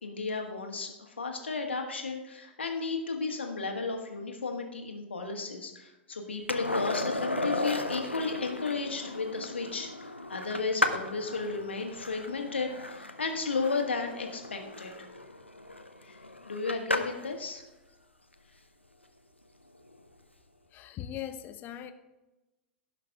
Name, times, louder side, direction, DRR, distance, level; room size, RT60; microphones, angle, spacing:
voice 1, 0.0-14.9 16.0-16.2 16.5-17.6, left 4 dB, 75° left, 1.6 m, -34 dB
Skateboard, 6.5-17.3 19.9-20.0, left 1 dB, 90° left, 0.7 m, -35 dB
voice 2, 20.7-21.9, left 10 dB, 30° left, 0.8 m, -39 dB
16.5 x 5.9 x 3.6 m
figure-of-eight pair, 95°, 6 cm